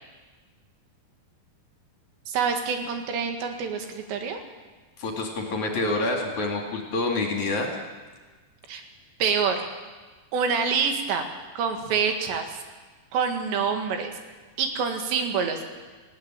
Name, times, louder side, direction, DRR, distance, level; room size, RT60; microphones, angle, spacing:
voice 1, 2.3-4.4 8.7-8.8 9.2-9.7 10.3-11.2 11.6-12.6 13.1-14.1 14.6-15.6, right 6 dB, 80° right, 4 dB, 4.2 m, -26 dB
voice 2, 5.0-7.7, left 2 dB, 50° left, 1 dB, 3.4 m, -27 dB
19.5 x 17.0 x 9.0 m, 1.3 s
omnidirectional pair, 5.0 m